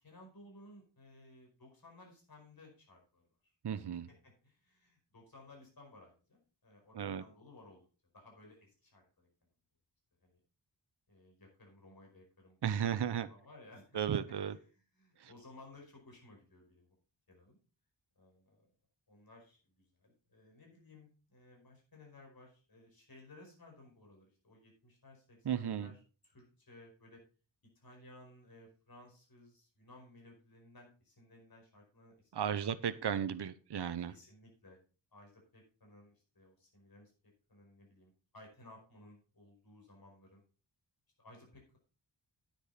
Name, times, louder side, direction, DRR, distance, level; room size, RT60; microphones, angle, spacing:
voice 1, 0.0-3.2 3.7-7.8 8.1-9.3 10.2-10.4 11.1-12.9 13.3-14.2 14.7-16.9 17.3-17.6 18.2-18.7 19.1-27.2 27.7-32.8 34.0-34.8 35.1-37.1 37.5-40.4 41.2-41.8, left 2 dB, 50° left, 5.1 m, -58 dB
voice 2, 3.6-4.1 6.9-7.2 12.6-13.3 13.9-14.6 15.2-15.3 25.4-25.9 32.3-34.1, right 8 dB, 60° right, 0.8 m, -35 dB
10.0 x 9.1 x 4.1 m
wide cardioid pair, 85°, 44 cm